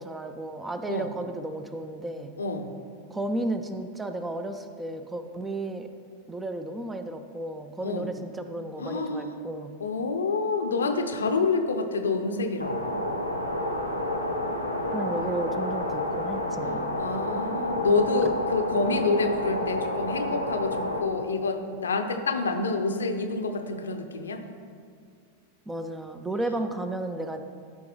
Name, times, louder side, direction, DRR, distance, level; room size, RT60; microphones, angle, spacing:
voice 1, 0.0-2.3 3.1-5.9 6.3-9.7 14.9-17.1 25.7-27.4, right 1 dB, 10° right, 8 dB, 0.5 m, -33 dB
voice 2, 2.4-2.7 7.8-8.1 8.8-9.3 9.8-12.8 17.0-24.4, left 3 dB, 70° left, 6 dB, 0.6 m, -27 dB
sound 1, 12.6-21.0, left 1 dB, 90° right, 0.7 m, -29 dB
13.0 x 5.0 x 3.3 m, 2.2 s
figure-of-eight pair, 90°, 0 cm